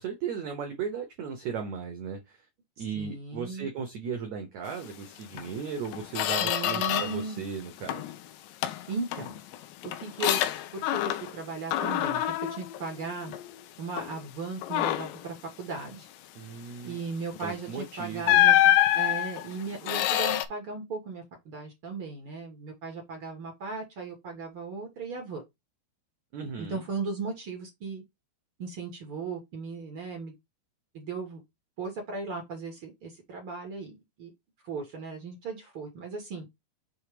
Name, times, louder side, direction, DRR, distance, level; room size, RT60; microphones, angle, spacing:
voice 1, 0.0-2.4 2.8-8.0 16.3-17.0 17.4-18.5 26.3-26.8, right 6 dB, 85° right, 1.6 m, -36 dB
voice 2, 2.9-3.7 6.4-7.4 8.9-9.4 9.8-10.4 10.7-13.3 13.8-16.1 16.8-25.4 26.6-28.0 28.6-30.3 30.9-31.4 31.8-34.3 34.6-36.5, right 4 dB, 65° right, 1.3 m, -37 dB
Squeak, 5.3-5.5 5.9-7.3 7.6-8.2 8.6-11.4 11.7-13.5 14.0-14.2 14.6-15.2 17.4-17.5 18.2-20.5, left 13 dB, 85° left, 2.9 m, -26 dB
7.2 x 3.0 x 4.9 m
omnidirectional pair, 4.8 m